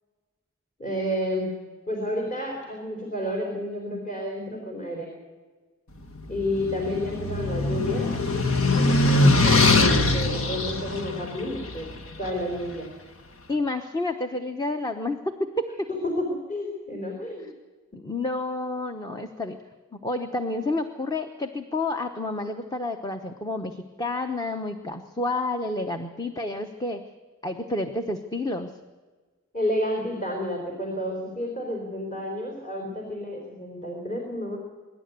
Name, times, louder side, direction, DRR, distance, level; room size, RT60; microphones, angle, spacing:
voice 1, 0.8-1.5 1.9-5.1 6.3-8.2 8.7-11.9 12.2-12.9 15.9-17.5 29.5-34.6, left 1 dB, 35° left, 0 dB, 4.1 m, -30 dB
sound 1, 6.2-12.4, left 2 dB, 70° left, 1.6 m, -22 dB
voice 2, 13.5-15.6 17.9-19.6 19.9-27.0 27.4-28.7, left 2 dB, 20° left, 6 dB, 1.0 m, -29 dB
24.5 x 11.5 x 9.4 m, 1.4 s
head